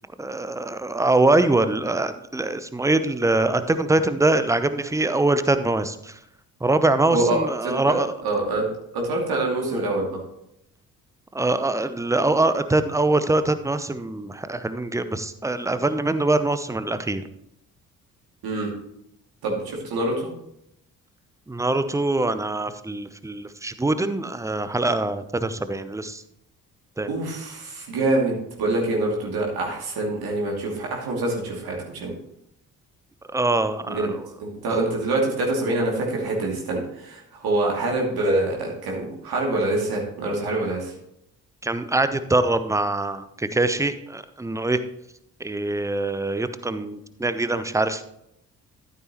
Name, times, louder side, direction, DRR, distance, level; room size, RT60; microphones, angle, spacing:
voice 1, 0.2-6.1 6.6-8.2 11.3-17.2 21.5-26.2 27.0-27.1 33.3-34.1 41.6-44.8 45.4-48.0, right 2 dB, 5° right, 12 dB, 0.7 m, -23 dB
voice 2, 7.1-8.0 8.2-8.7 8.9-10.2 18.4-18.7 19.4-20.3 27.1-32.1 33.9-34.1 34.4-40.9, right 2 dB, 55° right, -1 dB, 2.6 m, -25 dB
13.5 x 7.5 x 3.0 m, 0.77 s
figure-of-eight pair, 40°, 45 cm